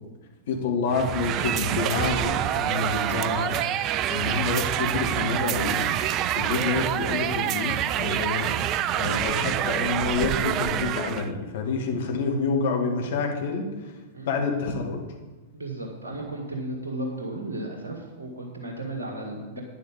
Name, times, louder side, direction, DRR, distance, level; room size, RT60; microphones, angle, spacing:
voice 1, 0.5-3.6 4.1-5.9 6.3-8.5 8.9-13.7 14.3-15.1, left 4 dB, 55° left, 2 dB, 2.1 m, -28 dB
sound 1, 0.9-11.3, right 11 dB, 35° right, 0.4 m, -27 dB
voice 2, 15.5-19.6, right 1 dB, 65° right, 1 dB, 1.7 m, -34 dB
11.5 x 9.6 x 5.2 m, 1.2 s
figure-of-eight pair, 95°, 0 cm